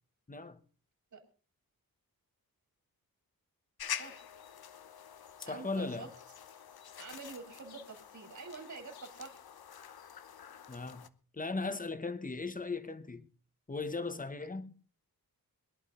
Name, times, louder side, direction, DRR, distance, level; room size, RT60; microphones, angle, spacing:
voice 1, 0.3-0.6 5.5-6.1 10.7-11.1 11.3-13.3 13.7-14.8, left 3 dB, 20° left, 1.2 m, -37 dB
sound 1, 3.8-11.1, left 8 dB, 85° left, 0.9 m, -46 dB
voice 2, 5.4-6.1 7.0-9.4, right 4 dB, 50° right, 3.3 m, -47 dB
22.0 x 11.5 x 3.8 m
wide cardioid pair, 135°, 36 cm